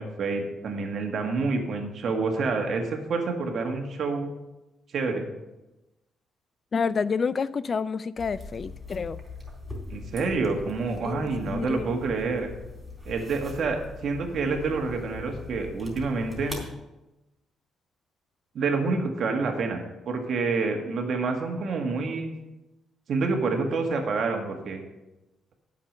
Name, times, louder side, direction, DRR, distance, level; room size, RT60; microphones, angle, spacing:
voice 1, 0.0-4.3 4.9-5.3 9.9-12.5 13.1-16.5 18.5-19.8 20.1-22.3 23.1-24.8, right 4 dB, 60° right, 3 dB, 1.8 m, -28 dB
voice 2, 6.7-9.2 11.0-11.8, left 5 dB, 40° left, 17 dB, 0.3 m, -29 dB
sound 1, 8.2-16.7, left 2 dB, ahead, 3.5 m, -41 dB
8.7 x 6.7 x 6.6 m, 1.0 s
cardioid pair, 90°, 0 cm